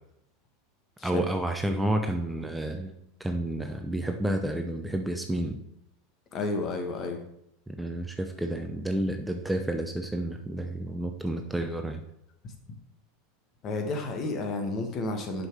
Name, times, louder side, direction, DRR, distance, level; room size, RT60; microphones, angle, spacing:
voice 1, 1.0-2.9 3.2-5.6 7.7-12.0, right 1 dB, 5° right, 5 dB, 0.7 m, -30 dB
voice 2, 6.3-7.2 13.6-15.5, left 2 dB, 40° left, 4 dB, 1.6 m, -31 dB
6.3 x 5.7 x 4.8 m, 0.79 s
hypercardioid pair, 95°, 0 cm